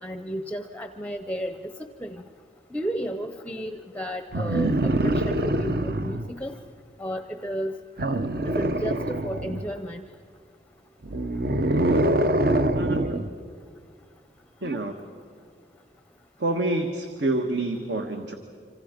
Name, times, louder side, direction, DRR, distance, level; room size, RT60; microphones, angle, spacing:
voice 1, 0.0-1.7 2.0-2.2 2.7-6.6 7.0-7.7 8.6-10.0, equal, 10° left, 8 dB, 0.6 m, -33 dB
sound 1, 4.3-6.3 8.0-9.7 11.0-13.3 14.6-14.8, right 1 dB, 55° right, 0.8 m, -24 dB
voice 2, 14.6-15.0 16.4-18.3, right 2 dB, 70° right, 5 dB, 1.3 m, -27 dB
26.5 x 26.0 x 5.1 m, 2.3 s
head